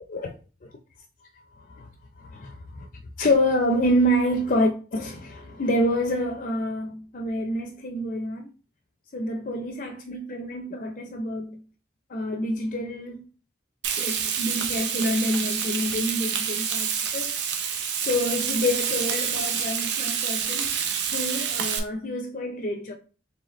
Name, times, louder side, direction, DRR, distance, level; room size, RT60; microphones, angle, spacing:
voice 1, 1.6-1.9 2.2-2.9 3.2-8.5 9.1-11.6 12.1-13.2 14.0-17.4 18.0-20.7 21.1-22.9, equal, 50° left, 0.5 m, -27 dB
Frying (food), 13.8-21.8, right 7 dB, 75° right, 0.7 m, -28 dB
4.1 x 3.3 x 3.0 m
head